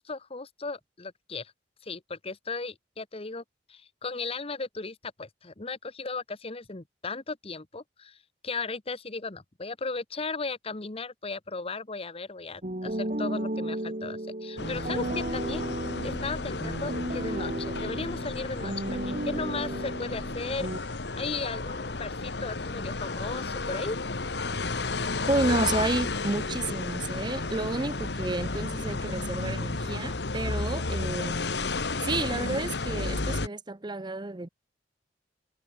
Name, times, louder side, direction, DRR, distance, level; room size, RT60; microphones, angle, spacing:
voice 1, 0.0-1.5 1.8-3.4 3.7-8.2 8.4-15.7 16.0-20.7 21.2-24.0, left 3 dB, 35° left, 1.2 m, -36 dB
sound 1, 12.6-20.8, right 1 dB, 45° right, 2.7 m, -34 dB
sound 2, 14.6-33.5, left 3 dB, 65° left, 1.4 m, -32 dB
voice 2, 25.3-31.4 32.0-34.5, right 2 dB, 25° right, 0.8 m, -31 dB
head